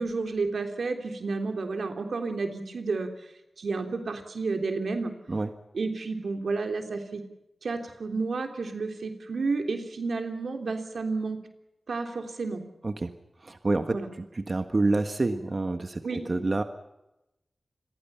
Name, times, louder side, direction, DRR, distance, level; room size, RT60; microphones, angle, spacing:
voice 1, 0.0-3.1 3.6-5.1 5.7-7.2 7.6-11.4 11.9-12.6 13.9-14.1 16.0-16.2, right 3 dB, 85° right, 5 dB, 3.3 m, -31 dB
voice 2, 13.4-16.6, right 2 dB, 45° right, 7 dB, 1.5 m, -28 dB
28.0 x 22.5 x 5.7 m, 0.93 s
wide cardioid pair, 75°, 0 cm